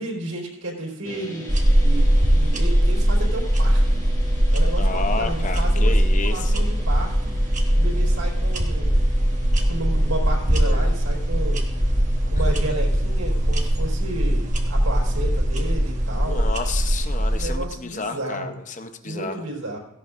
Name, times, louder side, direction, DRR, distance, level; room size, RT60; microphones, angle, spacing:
voice 1, 0.0-1.5 1.8-3.8 4.5-7.3 7.7-8.9 9.7-11.6 12.3-16.5 17.3-18.5 19.0-19.8, right 2 dB, 70° right, -1 dB, 4.1 m, -32 dB
sound 1, 1.0-16.2, left 1 dB, 15° left, 1.8 m, -39 dB
sound 2, 1.5-17.5, equal, 35° right, 1.4 m, -20 dB
voice 2, 4.7-6.6 10.7-10.9 16.1-19.4, left 4 dB, 35° left, 7 dB, 0.7 m, -31 dB
17.0 x 16.5 x 2.6 m, 0.85 s
head